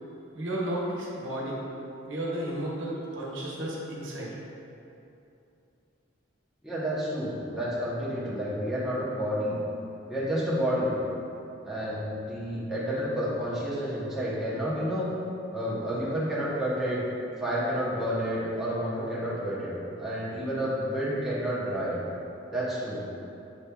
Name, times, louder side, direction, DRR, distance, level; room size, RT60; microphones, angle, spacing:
voice 1, 0.3-1.6 2.1-4.3, right 1 dB, 70° right, -4 dB, 0.9 m, -33 dB
voice 2, 6.6-9.6 10.1-10.9 11.6-15.1 15.5-17.0 17.4-22.0 22.5-23.0, equal, ahead, -10 dB, 0.8 m, -30 dB
6.9 x 3.2 x 2.2 m, 2.8 s
head